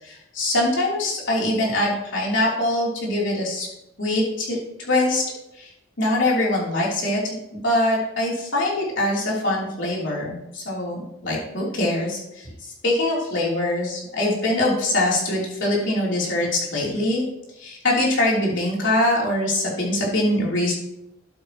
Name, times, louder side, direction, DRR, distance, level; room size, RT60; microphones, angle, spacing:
voice 1, 0.0-3.7 4.0-5.2 5.6-5.7 6.0-17.2 17.6-20.7, left 1 dB, 75° left, -4 dB, 3.2 m, -23 dB
11.5 x 8.0 x 3.0 m, 0.87 s
head